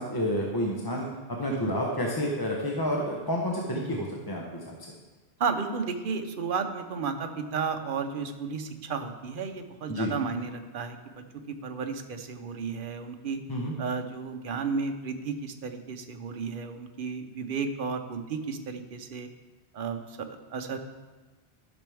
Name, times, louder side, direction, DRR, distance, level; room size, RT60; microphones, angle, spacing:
voice 1, 0.0-4.9 9.9-10.1 13.5-13.7, equal, 25° left, -2 dB, 0.8 m, -30 dB
voice 2, 5.4-13.4 13.8-19.3 19.7-20.8, right 5 dB, 55° right, 6 dB, 0.9 m, -33 dB
12.5 x 6.1 x 3.4 m, 1.2 s
omnidirectional pair, 1.1 m